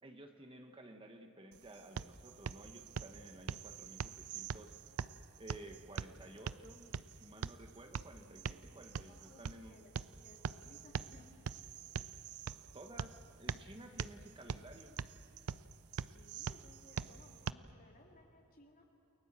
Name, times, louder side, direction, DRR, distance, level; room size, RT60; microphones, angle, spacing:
voice 1, 0.0-4.7 5.4-6.9 7.2-9.8 12.7-15.0, right 1 dB, 25° right, 4 dB, 1.3 m, -54 dB
sound 1, 1.5-17.5, right 6 dB, 70° right, 0.5 m, -44 dB
voice 2, 8.7-9.9 10.2-11.3 16.0-18.8, left 2 dB, 40° left, 1 dB, 3.1 m, -62 dB
29.0 x 21.5 x 7.5 m, 2.7 s
head